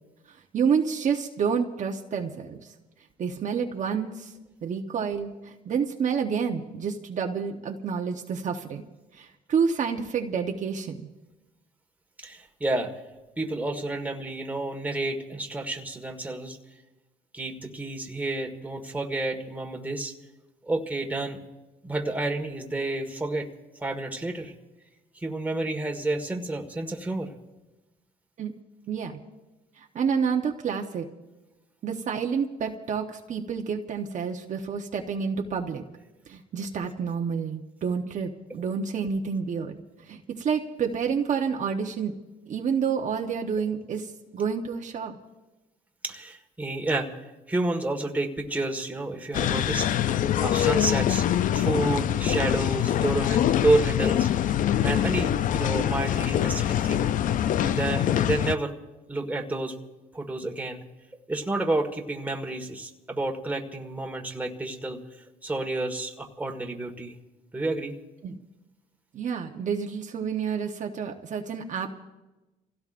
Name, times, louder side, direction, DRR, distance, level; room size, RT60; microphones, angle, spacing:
voice 1, 0.3-2.7 3.2-4.3 4.6-8.8 9.1-11.0 28.4-28.5 28.9-29.2 29.8-31.0 31.8-35.8 36.3-39.7 40.0-42.1 42.5-45.2 68.2-68.4 69.1-71.9, right 6 dB, 45° right, 3 dB, 1.1 m, -29 dB
voice 2, 12.2-12.9 13.4-16.6 17.3-20.1 20.6-21.4 21.8-23.5 23.8-24.5 25.1-27.3 46.0-47.1 47.5-49.9 50.4-51.3 51.5-54.3 54.8-57.1 57.6-58.7 59.1-59.7 60.1-60.8 61.3-65.0 65.4-67.1 67.5-67.9, right 2 dB, 10° right, 2 dB, 1.6 m, -30 dB
sound 1, 49.3-58.6, left 11 dB, 50° left, 0.5 m, -24 dB
28.0 x 16.5 x 2.6 m, 1.1 s
cardioid pair, 110°, 17 cm